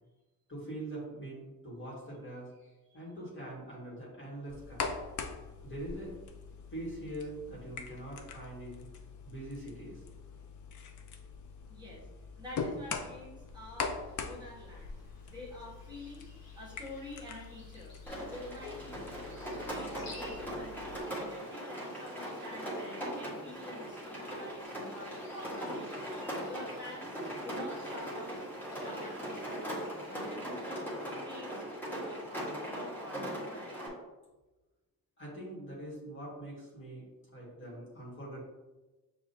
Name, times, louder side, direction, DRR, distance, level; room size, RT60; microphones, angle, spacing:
voice 1, 0.5-4.9 5.6-6.1 6.7-8.8 9.2-10.0 35.2-37.1 37.3-38.4, right 1 dB, 35° left, -5 dB, 1.5 m, -43 dB
sound 1, 4.5-21.0, left 5 dB, 55° left, 0.5 m, -43 dB
voice 2, 11.7-12.1 12.4-14.9 15.2-16.3 16.5-27.2 27.4-28.4 28.7-30.9 31.2-33.2 33.5-33.9, left 1 dB, 10° right, -7 dB, 1.3 m, -48 dB
sound 2, 13.5-30.3, left 3 dB, 75° left, 1.0 m, -56 dB
Rain, 18.1-33.9, equal, 5° left, 1.1 m, -40 dB
6.8 x 2.6 x 2.7 m, 1.1 s
wide cardioid pair, 150°, 36 cm